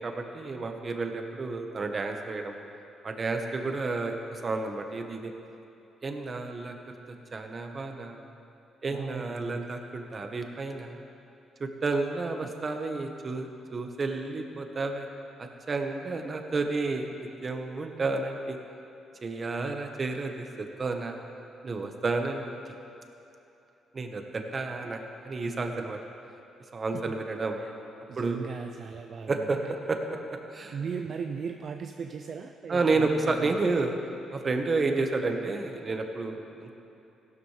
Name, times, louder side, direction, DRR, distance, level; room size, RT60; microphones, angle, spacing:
voice 1, 0.0-2.5 3.0-5.3 6.0-6.7 7.3-8.2 8.8-11.0 11.6-15.1 15.7-18.6 19.2-21.2 21.6-22.5 23.9-26.0 26.7-27.6 28.2-28.4 29.3-29.6 29.9-30.8 32.7-33.9 34.3-36.7, right 3 dB, 35° right, 4 dB, 1.2 m, -31 dB
voice 2, 8.9-9.6 12.4-12.5 26.9-27.1 27.6-27.7 28.1-29.4 30.7-33.6, right 6 dB, 55° right, 5 dB, 0.5 m, -37 dB
15.5 x 12.5 x 3.3 m, 3.0 s
cardioid pair, 90°, 0 cm